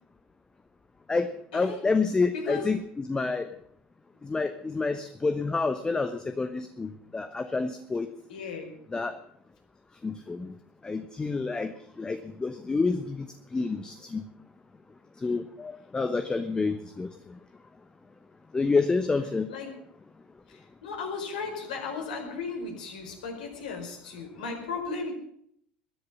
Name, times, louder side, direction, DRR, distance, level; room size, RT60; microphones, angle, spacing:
voice 1, 1.1-3.5 4.2-8.1 8.9-9.2 10.0-10.5 10.8-11.7 12.0-13.3 13.5-14.2 15.2-17.1 18.5-19.5, left 4 dB, 15° left, 9 dB, 1.0 m, -28 dB
voice 2, 2.3-2.7 8.3-8.7 19.5-19.7 20.5-25.1, left 4 dB, 65° left, 2 dB, 4.8 m, -36 dB
20.5 x 11.0 x 5.6 m, 0.68 s
figure-of-eight pair, 70°, 5 cm